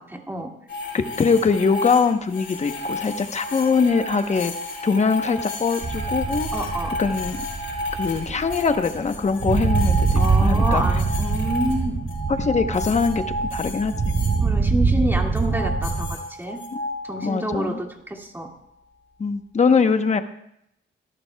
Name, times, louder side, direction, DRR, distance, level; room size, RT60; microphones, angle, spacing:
voice 1, 0.1-0.5 6.5-6.9 10.2-12.0 14.4-16.6 17.1-18.5 19.8-19.9, right 1 dB, 10° right, 1 dB, 2.2 m, -28 dB
sound 1, 0.7-14.4 15.2-17.8, left 1 dB, 80° left, 5.0 m, -32 dB
voice 2, 0.9-4.5 4.8-6.5 7.0-7.4 8.0-10.8 12.3-13.2 13.5-13.9 17.2-17.8 19.2-20.2, left 5 dB, 35° left, 8 dB, 1.0 m, -22 dB
sound 2, 5.8-16.2, right 4 dB, 30° right, 0.8 m, -24 dB
25.0 x 12.0 x 2.3 m, 0.75 s
cardioid pair, 110°, 20 cm